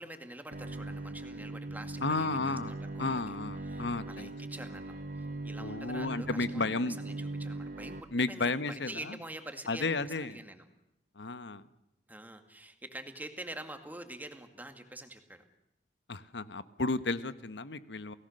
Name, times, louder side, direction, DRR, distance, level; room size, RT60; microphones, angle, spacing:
voice 1, 0.0-3.2 3.6-10.6 12.1-15.4, right 1 dB, 10° right, 7 dB, 2.0 m, -46 dB
Bowed string instrument, 0.5-8.0, right 2 dB, 50° right, 1.6 m, -40 dB
voice 2, 2.0-2.7 3.0-4.3 5.6-7.0 8.1-9.1 9.7-10.4 11.2-11.7 16.1-18.1, left 3 dB, 80° left, 14 dB, 1.1 m, -33 dB
29.0 x 18.0 x 6.6 m, 0.88 s
head